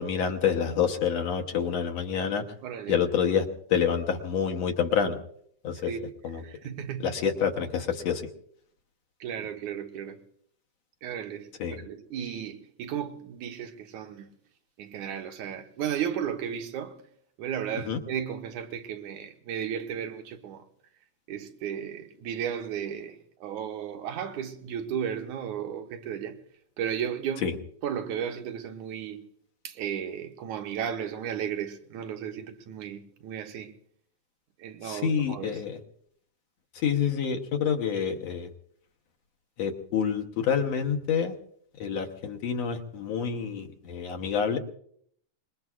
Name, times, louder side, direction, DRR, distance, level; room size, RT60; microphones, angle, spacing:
voice 1, 0.0-2.4 2.9-5.2 5.6-5.9 6.2-6.4 7.0-8.3 11.6-11.8 17.9-18.0 27.4-27.5 34.8-35.8 36.8-38.5 39.6-41.3 41.8-44.6, left 7 dB, 65° left, 2.0 m, -27 dB
voice 2, 2.6-3.0 5.9-6.1 6.4-7.1 9.2-10.2 11.0-14.3 14.8-17.0 17.4-20.7 21.3-26.4 26.8-27.5 27.8-29.2 29.6-33.7 34.6-35.6, right 8 dB, 75° right, 2.4 m, -34 dB
25.0 x 21.5 x 2.4 m
omnidirectional pair, 3.5 m